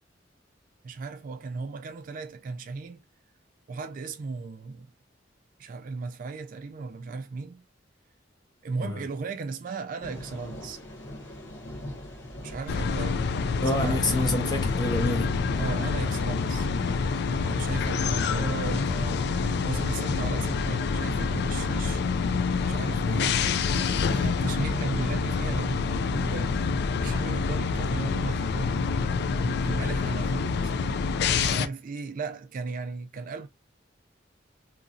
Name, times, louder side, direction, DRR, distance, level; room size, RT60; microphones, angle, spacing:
voice 1, 0.8-3.0 3.7-4.9 5.6-7.6 8.6-10.8 12.4-13.2 13.7-14.0 15.6-16.7 17.3-22.0 22.6-28.8 29.3-30.7 31.3-33.5, right 4 dB, 45° right, 0.3 m, -36 dB
sound 1, 10.0-28.1, left 1 dB, 80° left, 1.0 m, -46 dB
sound 2, 12.7-31.7, left 5 dB, 60° left, 0.3 m, -27 dB
voice 2, 13.6-15.3 23.1-23.3, left 1 dB, 20° left, 0.7 m, -27 dB
2.9 x 2.6 x 2.4 m
head